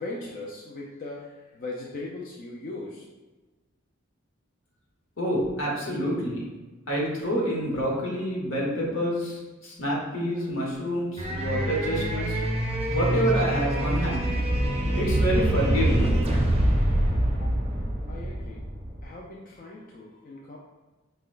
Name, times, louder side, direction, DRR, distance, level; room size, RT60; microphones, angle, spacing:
voice 1, 0.0-3.0 17.4-17.5 18.1-18.6 19.0-20.6, left 2 dB, 45° left, -3 dB, 0.4 m, -39 dB
voice 2, 5.2-6.4 6.9-12.4 12.9-14.3 14.9-16.1, equal, 75° left, -3 dB, 1.0 m, -27 dB
sound 1, 11.2-19.0, right 1 dB, 30° right, 0.5 m, -25 dB
5.5 x 2.2 x 2.4 m, 1.2 s
head